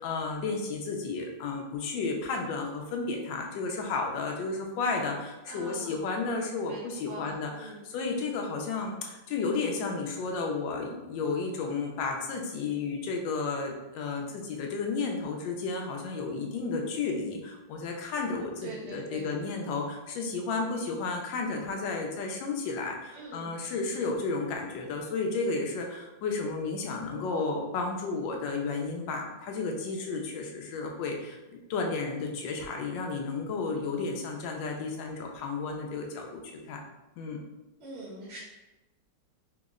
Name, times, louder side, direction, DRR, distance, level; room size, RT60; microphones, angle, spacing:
voice 1, 0.0-36.8 37.2-37.4, left 4 dB, 80° left, 2 dB, 1.3 m, -32 dB
voice 2, 5.5-6.2 6.6-7.8 18.6-19.3 23.1-23.6 37.8-38.4, right 2 dB, 55° right, -4 dB, 0.8 m, -43 dB
3.7 x 2.0 x 3.5 m, 1.0 s
omnidirectional pair, 2.0 m